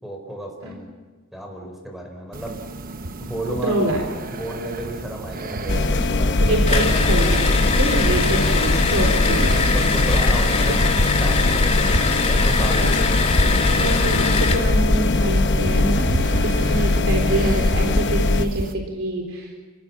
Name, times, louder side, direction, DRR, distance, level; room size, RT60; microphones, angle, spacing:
voice 1, 0.0-0.9 1.3-2.6 3.2-3.9 4.3-6.9 9.7-10.8 11.2-11.9 12.2-13.2, right 1 dB, ahead, 2 dB, 4.7 m, -32 dB
sound 1, 2.3-18.7, right 2 dB, 45° right, 1.1 m, -32 dB
voice 2, 3.5-4.1 6.4-9.5 10.9-11.0 12.8-13.0 13.8-19.5, right 1 dB, 75° right, 1 dB, 3.9 m, -25 dB
sound 2, 5.7-18.4, left 2 dB, 55° left, 0.9 m, -20 dB
sound 3, 6.7-14.7, left 4 dB, 30° left, 2.5 m, -24 dB
28.5 x 16.5 x 7.4 m, 1.4 s
head